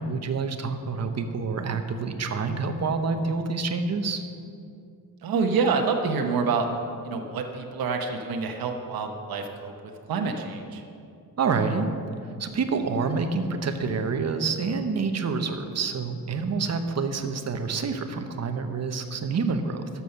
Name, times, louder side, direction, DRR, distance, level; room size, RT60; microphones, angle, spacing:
voice 1, 0.0-4.2 11.4-11.9 12.4-19.9, right 4 dB, 45° right, 7 dB, 1.0 m, -27 dB
voice 2, 5.2-6.7 7.0-10.8, right 5 dB, 75° right, 3 dB, 1.0 m, -27 dB
12.5 x 7.2 x 5.7 m, 2.5 s
cardioid pair, 115°, 36 cm